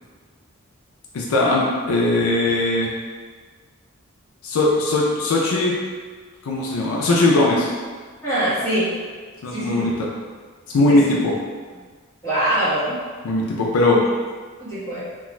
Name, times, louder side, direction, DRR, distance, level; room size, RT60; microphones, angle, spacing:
voice 1, 1.1-2.9 4.4-5.8 6.4-7.7 9.4-10.1 10.7-11.4 13.2-14.0, left 2 dB, 80° left, -3 dB, 0.4 m, -19 dB
voice 2, 8.2-8.9 9.5-9.8 10.9-11.0 12.2-13.0 14.6-15.0, right 1 dB, 15° left, -14 dB, 1.2 m, -23 dB
2.4 x 2.2 x 3.0 m, 1.5 s
head